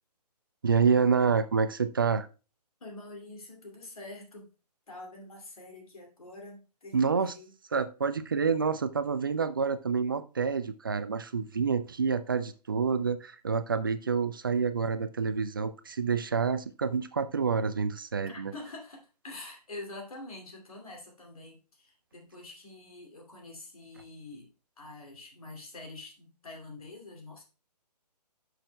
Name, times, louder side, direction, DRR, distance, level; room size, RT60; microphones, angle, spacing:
voice 1, 0.6-2.3 6.9-7.3 7.7-18.5, right 5 dB, 35° right, 0.4 m, -28 dB
voice 2, 2.8-4.5 4.9-7.5 18.3-24.5 24.8-27.4, left 2 dB, 60° left, 2.4 m, -46 dB
11.5 x 6.3 x 2.2 m
figure-of-eight pair, 135°, 21 cm